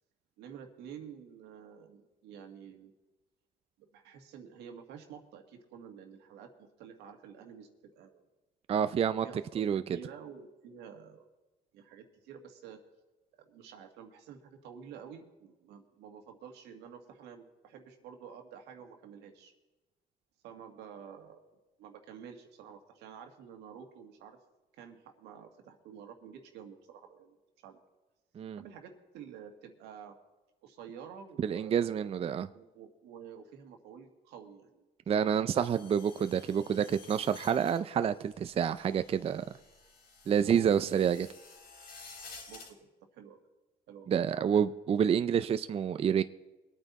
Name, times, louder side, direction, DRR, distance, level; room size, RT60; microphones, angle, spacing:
voice 1, 0.4-2.9 3.8-6.5 6.8-8.2 9.2-9.7 9.9-11.3 11.7-12.8 13.3-19.5 20.4-21.4 21.8-24.4 24.7-27.4 27.6-27.8 28.6-30.1 30.6-32.3 32.5-34.8 35.1-35.3 35.5-35.9 40.4-41.0 42.5-43.4 43.9-44.7, right 7 dB, 90° right, 2.0 m, -50 dB
voice 2, 8.7-9.3 9.5-9.8 28.4-28.6 31.4-32.5 35.1-39.5 40.3-41.3 44.1-46.2, right 8 dB, 35° right, 0.5 m, -28 dB
sound 1, 35.6-42.7, left 4 dB, 65° left, 3.7 m, -53 dB
22.0 x 9.1 x 4.1 m
cardioid pair, 110°, 17 cm